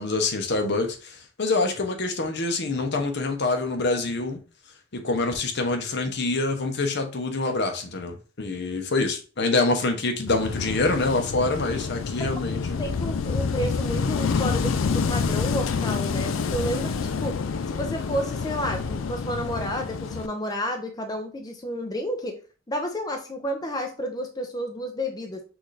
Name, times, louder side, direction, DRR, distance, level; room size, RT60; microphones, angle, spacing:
voice 1, 0.0-4.4 4.9-12.8, left 3 dB, 60° left, 0.8 m, -26 dB
Wind / Waves surf, 10.3-20.3, left 5 dB, 75° left, 0.4 m, -27 dB
voice 2, 12.8-17.4 17.7-22.4 22.7-25.4, equal, 20° left, 0.6 m, -31 dB
6.1 x 2.5 x 3.2 m
head